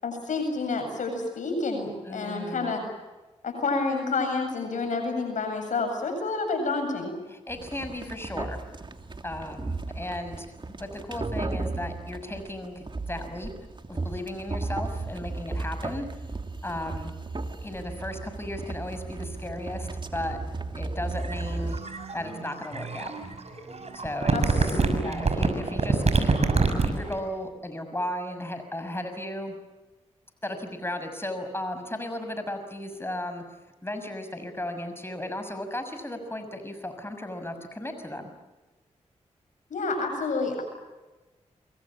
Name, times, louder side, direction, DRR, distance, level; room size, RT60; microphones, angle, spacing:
voice 1, 0.0-2.9 3.4-7.1 24.3-25.0 39.7-40.6, left 3 dB, 80° left, 5 dB, 7.9 m, -29 dB
voice 2, 2.0-2.7 7.3-8.6 9.2-13.5 13.9-16.1 16.6-17.1 17.6-20.4 20.7-21.8 22.1-23.1 23.9-26.3 26.8-29.5 30.4-33.4 33.8-38.3, left 1 dB, 20° left, 8 dB, 6.3 m, -35 dB
sound 1, 7.5-21.8, right 3 dB, 40° right, 3.0 m, -35 dB
sound 2, 21.2-27.1, right 3 dB, 55° right, 6.4 m, -25 dB
28.5 x 24.5 x 7.4 m, 1.1 s
cardioid pair, 50°, 13 cm